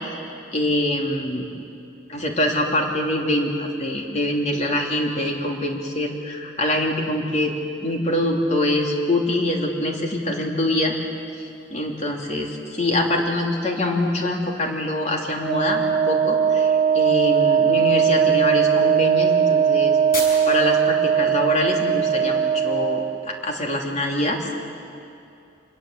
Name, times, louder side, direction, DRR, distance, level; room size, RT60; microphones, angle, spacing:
voice 1, 0.5-1.5 2.1-7.5 7.8-10.9 11.4-20.0 20.5-24.4, left 1 dB, 40° left, 1 dB, 3.1 m, -24 dB
sound 1, 10.9-22.7, left 2 dB, 55° left, 5.2 m, -43 dB
Wind instrument woodwind instrument, 15.4-23.2, right 7 dB, 35° right, 0.6 m, -19 dB
26.0 x 21.0 x 8.2 m, 2.6 s
head